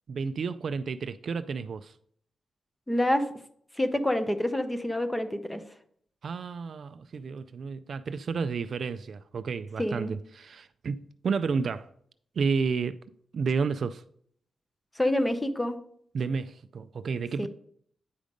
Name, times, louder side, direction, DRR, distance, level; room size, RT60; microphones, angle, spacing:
voice 1, 0.1-1.9 6.2-11.9 12.4-13.0 13.3-14.0 16.1-17.5, right 5 dB, 50° right, 0.3 m, -31 dB
voice 2, 2.9-3.3 3.8-5.6 9.8-10.1 15.0-15.8 17.4-17.5, left 1 dB, 10° left, 0.6 m, -27 dB
9.2 x 5.0 x 5.2 m
wide cardioid pair, 180°, 0 cm